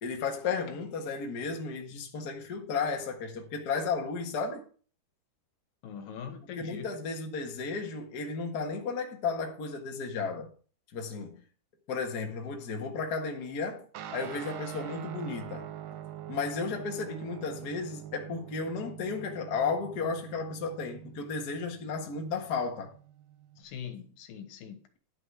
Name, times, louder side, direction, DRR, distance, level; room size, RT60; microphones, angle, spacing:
voice 1, 0.0-4.6 6.6-10.5 10.9-11.4 11.9-13.9 14.1-15.7 16.3-22.9, left 4 dB, 85° left, 0.8 m, -34 dB
voice 2, 5.8-6.9 23.6-24.9, left 7 dB, 70° left, 2.7 m, -42 dB
Guitar, 13.9-23.6, right 11 dB, 85° right, 2.8 m, -44 dB
11.0 x 6.2 x 4.8 m
omnidirectional pair, 4.5 m